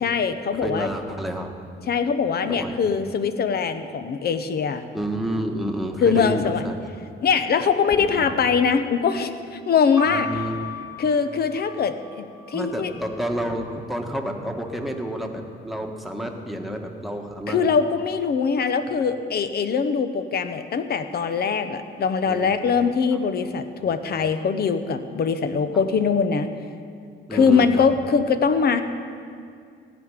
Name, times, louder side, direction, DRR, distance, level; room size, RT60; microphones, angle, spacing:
voice 1, 0.0-0.9 1.9-4.8 6.0-6.6 7.2-10.3 11.0-12.9 17.5-26.5 27.3-28.8, left 6 dB, 50° left, 10 dB, 0.9 m, -22 dB
voice 2, 0.5-1.5 2.5-2.8 4.9-6.7 8.0-8.4 10.1-10.7 12.5-17.7 18.9-19.1 22.3-22.5 23.8-23.9 27.3-27.9, right 1 dB, ahead, 2 dB, 1.4 m, -30 dB
sound 1, 10.0-13.8 14.6-15.3, left 4 dB, 15° right, 1.0 m, -37 dB
15.5 x 5.2 x 9.7 m, 2.3 s
cardioid pair, 90°, 20 cm